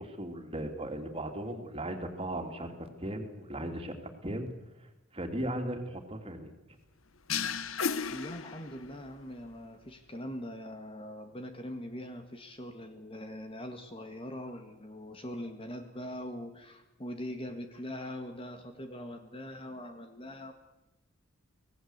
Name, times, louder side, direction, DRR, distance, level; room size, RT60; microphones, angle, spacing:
voice 1, 0.0-3.9 4.2-4.5 5.1-6.5, right 1 dB, 25° right, 5 dB, 3.0 m, -37 dB
sound 1, 7.3-9.1, left 6 dB, 70° left, 1.1 m, -34 dB
voice 2, 8.1-20.5, left 1 dB, 25° left, 6 dB, 1.8 m, -42 dB
25.0 x 18.5 x 8.1 m, 0.96 s
head